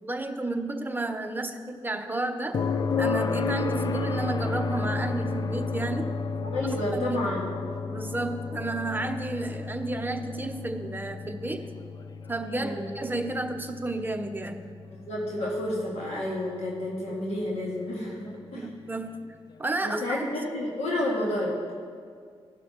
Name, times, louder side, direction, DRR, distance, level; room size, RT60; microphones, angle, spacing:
voice 1, 0.0-2.6 3.0-6.2 6.9-7.2 7.5-7.6 7.9-11.7 12.3-14.6 18.5-20.3, right 2 dB, 20° right, 5 dB, 0.8 m, -32 dB
sound 1, 2.5-16.4 18.6-18.7, left 4 dB, 40° left, 0.4 m, -32 dB
voice 2, 6.4-7.5 12.6-12.9 14.9-18.7 19.8-21.6, left 1 dB, 75° left, -4 dB, 1.8 m, -30 dB
16.5 x 6.0 x 2.9 m, 2.1 s
cardioid pair, 75°, 11 cm